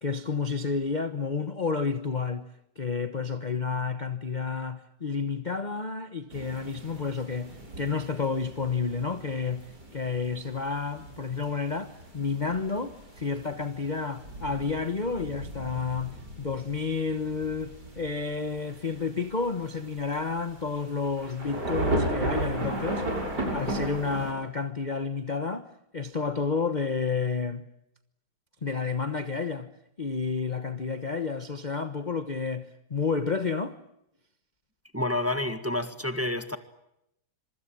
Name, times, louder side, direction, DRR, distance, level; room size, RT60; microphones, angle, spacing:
voice 1, 0.0-2.5 2.8-23.1 23.5-25.6 25.9-27.7 28.6-29.7 30.0-33.8, left 4 dB, 30° left, 1.0 m, -30 dB
sound 1, 6.3-24.3, right 1 dB, 60° right, 7.6 m, -36 dB
voice 2, 34.9-36.6, left 1 dB, 10° right, 1.5 m, -29 dB
26.0 x 24.5 x 8.7 m
omnidirectional pair, 2.0 m